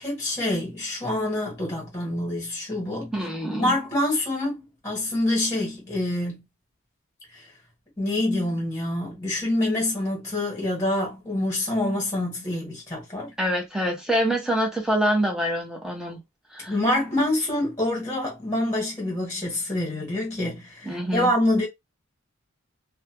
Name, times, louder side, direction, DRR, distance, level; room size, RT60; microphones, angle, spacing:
voice 1, 0.0-3.1 3.6-6.4 7.3-7.4 8.0-13.3 16.7-21.7, left 1 dB, 15° left, 1.5 m, -26 dB
voice 2, 3.1-3.7 13.4-16.2 16.5-16.7 20.8-21.3, equal, 5° right, 1.0 m, -25 dB
2.8 x 2.2 x 2.9 m
head